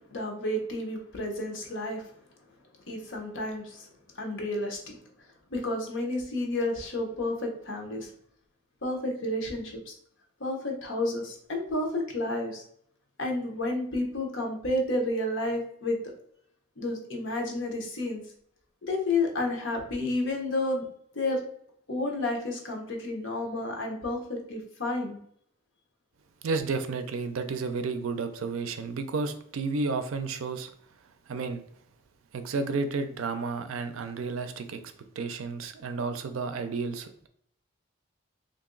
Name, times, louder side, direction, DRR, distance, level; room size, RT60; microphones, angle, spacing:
voice 1, 0.1-2.0 2.9-3.9 4.2-5.0 5.5-8.1 8.8-9.9 10.4-12.6 13.2-16.0 16.8-18.2 18.8-20.8 21.1-21.4 21.9-25.2, left 2 dB, 65° left, 1 dB, 0.8 m, -31 dB
voice 2, 26.4-30.7 31.3-31.6 32.3-34.8 35.2-37.3, right 4 dB, 85° right, 9 dB, 0.4 m, -32 dB
2.9 x 2.6 x 3.7 m, 0.66 s
head